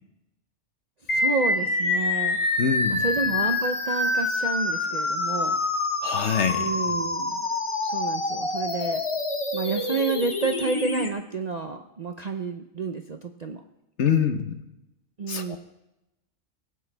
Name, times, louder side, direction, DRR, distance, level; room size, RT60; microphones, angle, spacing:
sound 1, 1.1-11.1, left 2 dB, 25° left, 0.8 m, -26 dB
voice 1, 1.1-2.4 2.9-5.6 6.5-7.4 7.8-9.0 9.5-13.6 15.2-15.6, right 4 dB, 45° right, 5 dB, 0.5 m, -30 dB
voice 2, 2.6-3.0 6.0-6.7 14.0-14.6 15.3-15.6, left 7 dB, 60° left, 7 dB, 1.1 m, -25 dB
20.0 x 8.8 x 3.4 m, 0.92 s
omnidirectional pair, 1.4 m